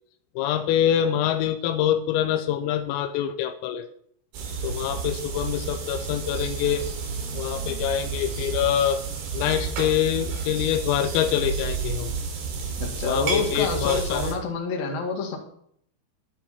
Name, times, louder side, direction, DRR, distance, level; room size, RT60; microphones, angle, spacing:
voice 1, 0.4-3.9 4.6-6.9 7.3-9.0 9.3-12.1 13.1-14.4, left 10 dB, 85° left, 8 dB, 3.4 m, -25 dB
sound 1, 4.3-14.3, right 5 dB, 60° right, 4.4 m, -31 dB
voice 2, 12.8-15.4, left 3 dB, 55° left, 1 dB, 3.4 m, -28 dB
12.0 x 11.5 x 4.3 m, 0.66 s
omnidirectional pair, 5.9 m